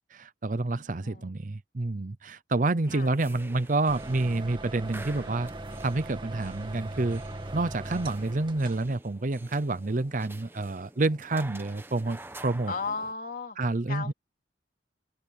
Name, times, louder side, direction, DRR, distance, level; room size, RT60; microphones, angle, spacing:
voice 1, 0.1-5.5 5.8-7.2 7.5-12.7 13.6-14.1, right 2 dB, 45° right, 0.7 m, -28 dB
voice 2, 1.0-1.3 2.9-3.1 12.7-13.6 13.9-14.1, left 4 dB, 50° left, 3.6 m, -35 dB
sound 1, 2.9-13.1, right 2 dB, 10° right, 1.1 m, -48 dB
sound 2, 3.9-9.0, right 2 dB, 30° right, 2.4 m, -40 dB
open air
head